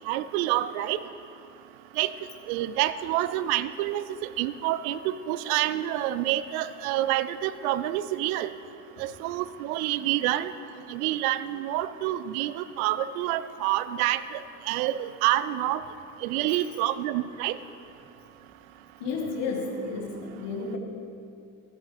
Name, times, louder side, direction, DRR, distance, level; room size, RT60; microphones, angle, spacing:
voice 1, 0.1-1.0 2.0-2.1 2.5-8.5 9.0-10.5 10.9-14.4 14.7-15.8 16.2-17.6, right 14 dB, 70° right, 15 dB, 0.5 m, -27 dB
voice 2, 19.0-20.8, left 4 dB, 65° left, 1 dB, 1.8 m, -32 dB
17.0 x 8.5 x 3.3 m, 2.6 s
figure-of-eight pair, 50°, 45 cm